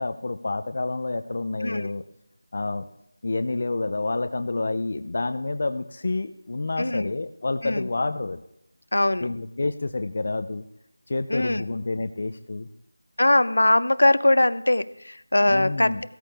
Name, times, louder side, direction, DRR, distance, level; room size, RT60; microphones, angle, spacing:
voice 1, 0.0-2.0 2.5-2.8 3.2-8.4 9.2-10.6 11.1-12.7 15.5-16.0, left 3 dB, 35° left, 8 dB, 0.5 m, -28 dB
voice 2, 6.8-7.1 7.6-7.9 8.9-9.3 11.3-11.6 13.2-16.0, left 1 dB, 70° left, 14 dB, 0.7 m, -21 dB
15.0 x 13.5 x 3.4 m, 0.79 s
figure-of-eight pair, 180°, 0 cm